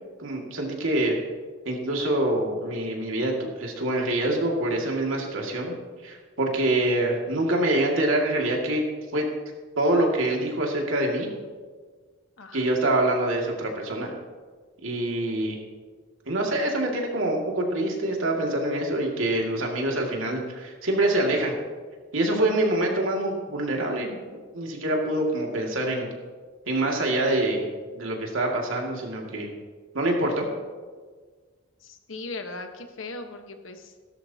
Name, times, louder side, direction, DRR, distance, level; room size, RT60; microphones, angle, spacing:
voice 1, 0.2-1.2 1.7-5.8 6.0-8.8 9.1-9.3 9.8-11.3 12.5-14.1 14.8-15.6 16.3-21.5 22.1-26.1 26.7-27.6 27.9-29.5 29.9-30.5, right 1 dB, 80° right, 0 dB, 2.2 m, -25 dB
voice 2, 12.4-12.8 31.8-34.0, left 3 dB, 75° left, 6 dB, 1.2 m, -39 dB
16.0 x 13.0 x 2.8 m, 1.5 s
head